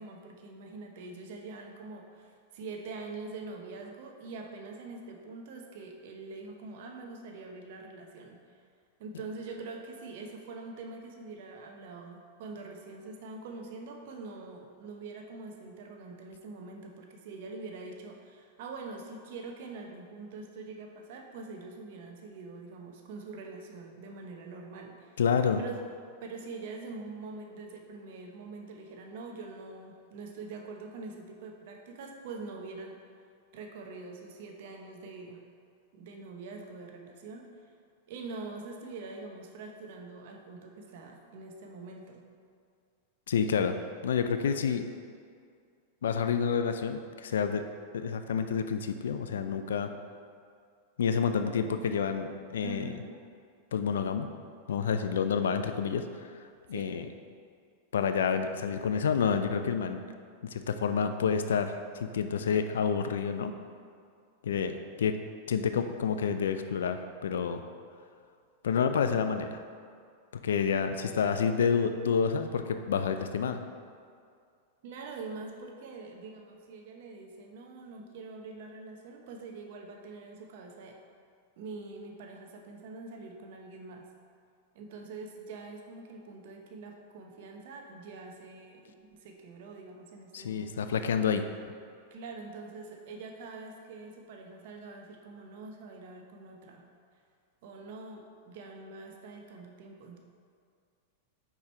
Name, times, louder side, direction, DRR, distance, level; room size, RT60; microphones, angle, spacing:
voice 1, 0.0-8.4 9.0-25.2 25.6-25.9 26.2-33.0 33.5-35.4 35.9-37.5 38.1-42.3 52.6-53.3 56.7-57.1 74.8-81.0 81.6-84.1 84.7-90.9 92.1-96.9 97.6-100.2, right 3 dB, 65° right, 2 dB, 0.8 m, -44 dB
voice 2, 25.2-25.6 43.3-43.8 44.0-44.9 46.0-47.6 47.9-49.9 51.0-52.9 53.7-54.3 54.7-56.0 56.7-57.0 57.9-60.0 60.4-61.7 62.0-63.5 64.4-65.2 65.5-67.6 68.6-69.6 70.4-73.6 90.3-91.4, left 6 dB, 80° left, 8 dB, 0.4 m, -28 dB
4.9 x 4.6 x 4.4 m, 2.2 s
hypercardioid pair, 110°, 0 cm